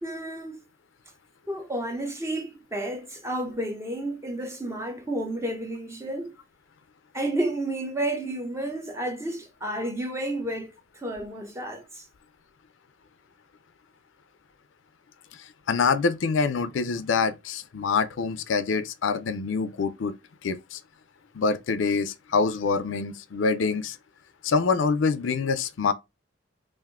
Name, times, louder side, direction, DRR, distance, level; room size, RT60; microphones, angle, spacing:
voice 1, 0.0-0.6 1.5-6.3 7.1-12.1, right 1 dB, 15° right, 0.8 m, -31 dB
voice 2, 15.7-20.1 20.4-20.8 21.3-24.0 24.4-25.9, left 4 dB, 80° left, 0.4 m, -25 dB
3.6 x 2.5 x 3.4 m
head